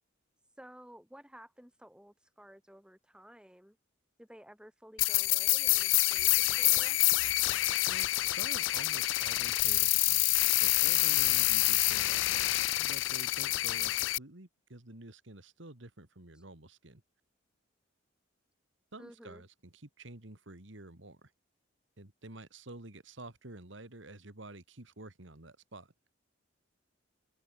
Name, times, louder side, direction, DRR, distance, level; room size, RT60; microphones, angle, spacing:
voice 1, 0.6-3.8 4.2-7.0 19.0-19.4, equal, 5° right, 5.6 m, -54 dB
sound 1, 5.0-14.2, left 19 dB, 65° left, 0.4 m, -27 dB
voice 2, 7.9-10.4 10.6-17.0 18.9-21.3 22.0-25.9, right 2 dB, 65° right, 2.5 m, -49 dB
head